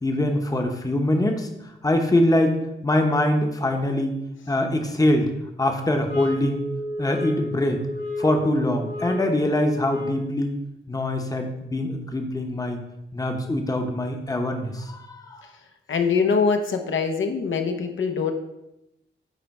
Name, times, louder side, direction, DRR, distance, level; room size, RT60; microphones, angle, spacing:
voice 1, 0.0-1.5 1.8-4.1 4.5-5.3 5.6-6.6 7.0-7.8 8.2-10.6 10.9-12.8 13.1-15.4, left 1 dB, 20° left, 4 dB, 0.8 m, -23 dB
sound 1, 6.1-10.4, left 1 dB, 55° left, 1.5 m, -32 dB
voice 2, 15.9-18.3, left 5 dB, 80° left, 5 dB, 0.8 m, -23 dB
9.1 x 3.3 x 5.3 m, 0.89 s
wide cardioid pair, 140°, 20 cm